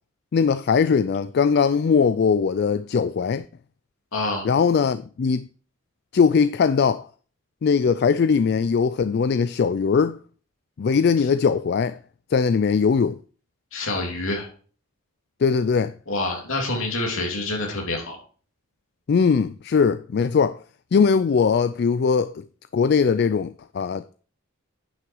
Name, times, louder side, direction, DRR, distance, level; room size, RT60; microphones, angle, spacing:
voice 1, 0.3-3.4 4.4-5.5 6.1-7.0 7.6-10.2 10.8-12.0 12.3-13.2 15.4-15.9 19.1-20.6 20.9-22.3 22.7-24.2, left 5 dB, 50° left, 0.3 m, -20 dB
voice 2, 4.1-4.4 13.7-14.5 16.1-18.2, left 2 dB, 70° left, 3.0 m, -27 dB
9.8 x 6.0 x 4.6 m
head